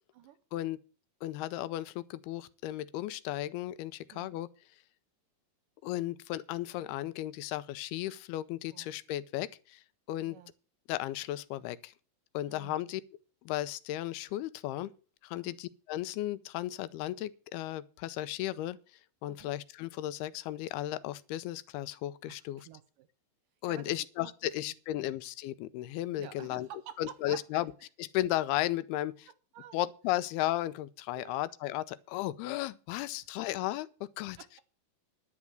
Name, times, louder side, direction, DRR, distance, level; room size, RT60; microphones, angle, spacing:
voice 1, 1.2-4.5 5.8-9.8 10.1-10.4 10.9-11.9 12.3-13.0 13.4-14.9 15.2-18.8 19.2-22.7 23.6-26.7 27.0-27.7 28.1-29.3 29.7-34.4, left 14 dB, 90° left, 2.7 m, -35 dB
voice 2, 4.1-4.4 8.7-8.9 10.3-10.5 12.4-12.7 15.3-15.6 19.3-19.5 22.2-23.1 23.7-24.3 24.7-25.1 26.2-27.6 29.5-29.8 31.1-31.5 33.1-33.3 34.4-34.6, right 11 dB, 75° right, 2.1 m, -50 dB
11.0 x 7.3 x 7.6 m
omnidirectional pair, 4.4 m